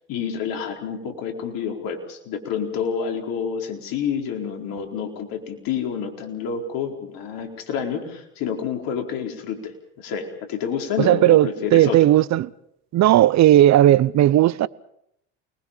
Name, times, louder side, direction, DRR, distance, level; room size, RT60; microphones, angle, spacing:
voice 1, 0.1-9.7 10.0-12.1, left 7 dB, 65° left, 4.5 m, -28 dB
voice 2, 11.0-12.5 12.9-14.7, right 13 dB, 45° right, 0.9 m, -15 dB
29.0 x 20.5 x 5.8 m
hypercardioid pair, 80°, 37 cm